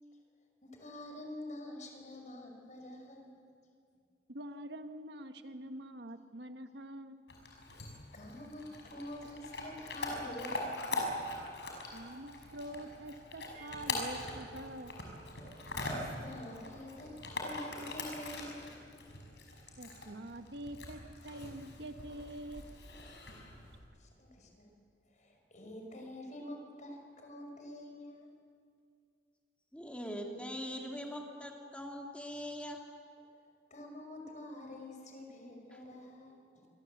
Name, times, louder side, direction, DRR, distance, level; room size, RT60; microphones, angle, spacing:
voice 1, 0.6-3.4 8.1-11.1 15.8-18.8 24.0-24.7 25.1-28.3 33.7-36.7, left 1 dB, 45° left, 3 dB, 5.4 m, -47 dB
voice 2, 4.3-7.2 11.9-14.9 19.8-22.6, right 1 dB, 70° right, 7 dB, 1.4 m, -45 dB
Chewing mastication / Dog, 7.3-23.8, left 2 dB, 75° left, 5.6 m, -42 dB
sound 1, 13.5-17.3, right 4 dB, 40° right, 6.2 m, -58 dB
voice 3, 29.7-32.8 35.7-35.8, equal, 5° left, 1 dB, 2.5 m, -42 dB
27.0 x 24.0 x 8.1 m, 2.3 s
head